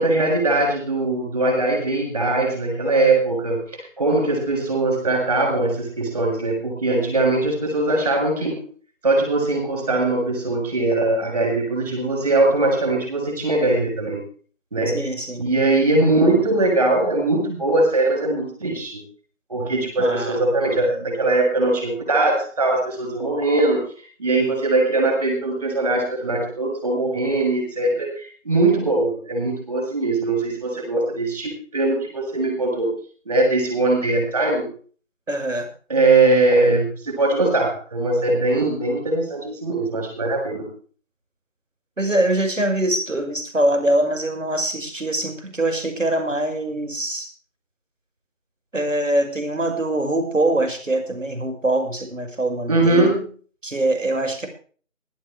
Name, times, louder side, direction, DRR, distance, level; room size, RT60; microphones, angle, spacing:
voice 1, 0.0-3.6 4.0-8.7 9.0-14.2 14.7-15.1 15.4-19.0 19.5-23.8 24.2-32.9 33.3-34.7 35.9-40.7 52.7-53.3, right 2 dB, 30° right, 1 dB, 7.1 m, -21 dB
voice 2, 14.9-15.4 20.0-20.4 35.3-35.7 42.0-47.3 48.7-53.1 53.6-54.5, right 1 dB, 70° right, 6 dB, 5.9 m, -23 dB
20.0 x 13.0 x 3.4 m, 0.42 s
figure-of-eight pair, 170°, 40 cm